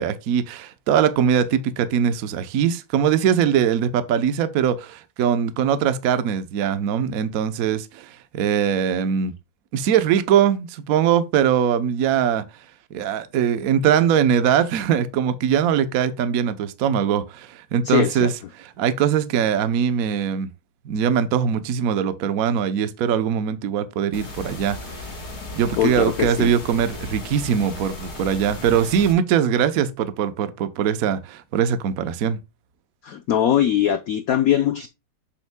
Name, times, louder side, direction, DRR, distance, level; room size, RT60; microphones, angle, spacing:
voice 1, 0.0-9.3 9.7-12.4 12.9-18.3 18.8-20.5 20.8-25.1 25.5-32.4, right 8 dB, 60° right, 1.0 m, -21 dB
voice 2, 17.8-18.3 25.8-26.5 33.0-34.9, left 10 dB, 75° left, 0.8 m, -21 dB
sound 1, 24.1-29.1, left 2 dB, 35° left, 1.9 m, -35 dB
7.9 x 7.2 x 2.2 m
omnidirectional pair, 2.2 m